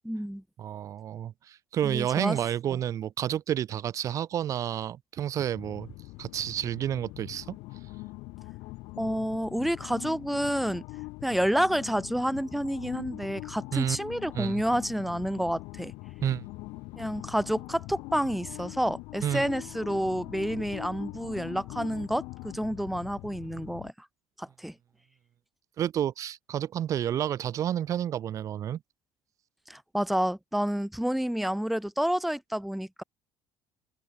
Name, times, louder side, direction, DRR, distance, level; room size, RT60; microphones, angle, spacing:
voice 1, 0.0-0.4 1.8-2.4 9.0-10.8 11.2-15.9 17.0-24.1 24.4-24.7 29.7-33.0, equal, ahead, 6.3 m, -29 dB
voice 2, 0.6-5.9 6.2-7.6 13.7-14.0 14.3-14.6 16.2-16.4 19.2-19.4 25.8-28.8, right 10 dB, 45° right, 5.1 m, -30 dB
sound 1, 5.5-23.9, left 23 dB, 80° left, 7.6 m, -42 dB
open air
cardioid pair, 150°, 8 cm